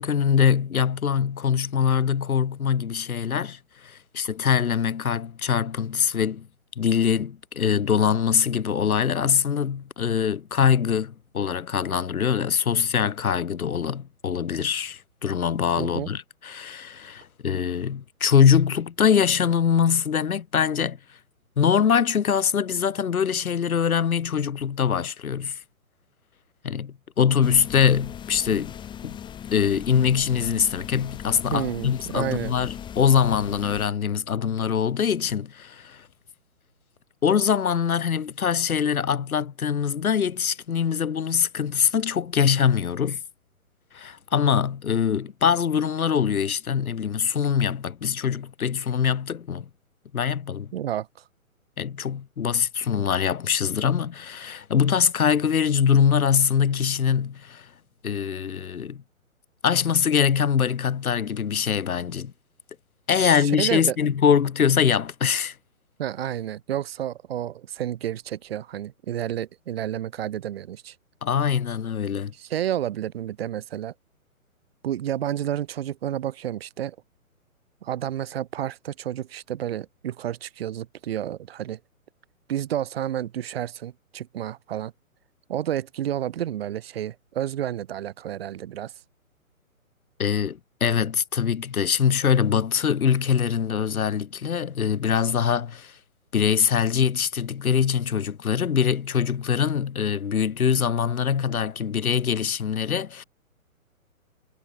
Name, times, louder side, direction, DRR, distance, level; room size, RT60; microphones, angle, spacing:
voice 1, 0.0-6.5 6.8-21.0 21.6-25.6 26.6-28.7 29.0-29.2 29.5-36.1 37.2-43.2 43.9-49.7 50.1-50.7 51.8-57.7 58.0-59.0 59.6-62.3 63.1-65.5 71.2-72.3 90.2-96.0 96.3-103.2, left 7 dB, 85° left, 1.3 m, -23 dB
voice 2, 15.8-16.1 31.5-32.5 50.7-51.1 63.1-64.0 66.0-70.9 72.3-73.9 74.8-77.0 77.8-81.8 82.5-84.9 85.5-88.9, right 11 dB, 45° right, 2.2 m, -30 dB
sound 1, 27.4-33.9, left 9 dB, 10° left, 2.6 m, -39 dB
hypercardioid pair, 150°, 42 cm